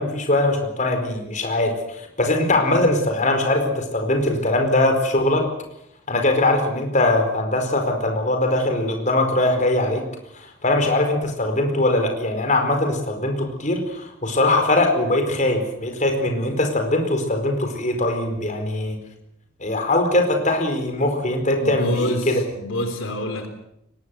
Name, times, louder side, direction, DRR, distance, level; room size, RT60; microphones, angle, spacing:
voice 1, 0.0-5.5 6.1-10.0 10.3-19.0 19.6-22.4, left 2 dB, 40° left, 5 dB, 4.6 m, -21 dB
voice 2, 21.6-23.5, left 1 dB, 85° left, 7 dB, 3.5 m, -27 dB
23.0 x 20.0 x 7.9 m, 0.77 s
head